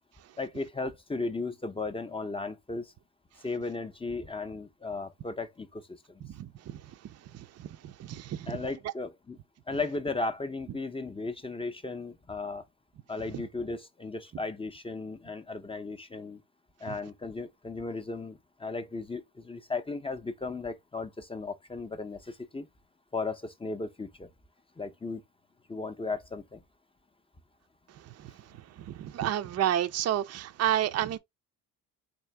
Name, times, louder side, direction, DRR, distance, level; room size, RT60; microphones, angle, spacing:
voice 1, 0.4-2.9 3.4-6.2 8.5-9.4 9.7-12.6 13.1-16.4 16.8-22.7 23.1-24.3 24.8-25.2 25.7-26.6, left 3 dB, 15° left, 0.5 m, -36 dB
voice 2, 6.3-6.8 7.3-8.6 16.9-17.0 28.2-28.3 28.8-31.2, right 11 dB, 45° right, 0.5 m, -30 dB
3.7 x 2.5 x 3.2 m
supercardioid pair, 70°, 38 cm